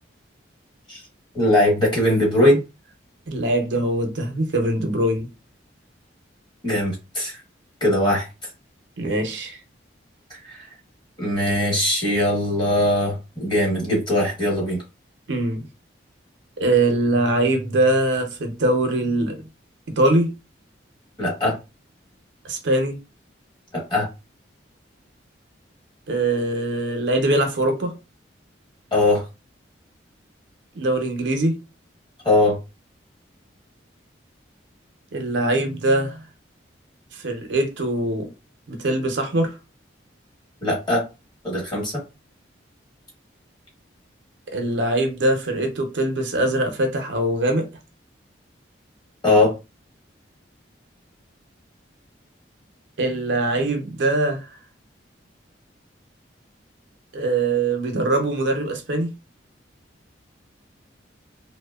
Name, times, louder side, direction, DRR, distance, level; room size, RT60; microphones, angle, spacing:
voice 1, 1.3-2.6 6.6-7.4 7.8-8.2 10.3-10.6 11.2-14.8 21.2-21.5 23.9-24.1 28.9-29.2 32.2-32.6 40.6-41.0 41.4-41.9 49.2-49.5, left 1 dB, 25° left, 1.0 m, -20 dB
voice 2, 3.3-5.3 9.0-9.6 15.3-15.7 16.6-19.5 20.0-20.3 22.4-23.0 26.1-27.9 30.7-31.6 35.1-36.2 37.1-38.3 38.7-39.6 44.5-47.7 53.0-54.5 57.1-59.1, right 2 dB, 70° right, 0.6 m, -22 dB
2.7 x 2.0 x 2.2 m
head